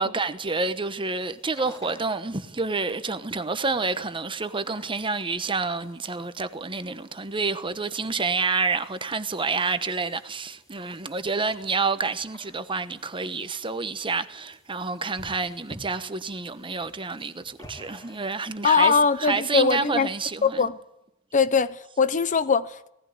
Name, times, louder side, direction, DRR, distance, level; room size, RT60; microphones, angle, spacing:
voice 1, 0.0-18.9 19.2-20.7, right 4 dB, 25° right, 1.1 m, -28 dB
sound 1, 0.7-19.5, equal, 15° left, 3.0 m, -53 dB
voice 2, 18.6-20.1 20.4-20.8 21.3-22.9, left 5 dB, 35° left, 0.7 m, -21 dB
18.5 x 15.0 x 9.5 m
head